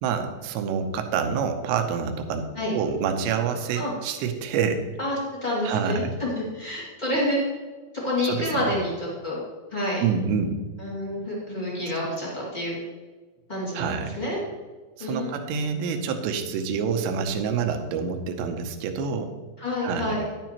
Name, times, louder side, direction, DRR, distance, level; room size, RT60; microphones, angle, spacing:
voice 1, 0.0-4.8 5.6-6.1 8.2-8.7 10.0-10.6 12.0-12.1 13.7-14.2 15.0-19.3 19.8-20.2, right 6 dB, 85° right, 6 dB, 3.0 m, -27 dB
voice 2, 5.0-7.4 8.0-9.4 9.7-10.0 10.8-12.7 13.5-14.4 15.0-15.3 19.6-20.2, left 1 dB, 30° left, -6 dB, 0.8 m, -28 dB
10.0 x 9.0 x 2.9 m, 1.4 s
omnidirectional pair, 5.0 m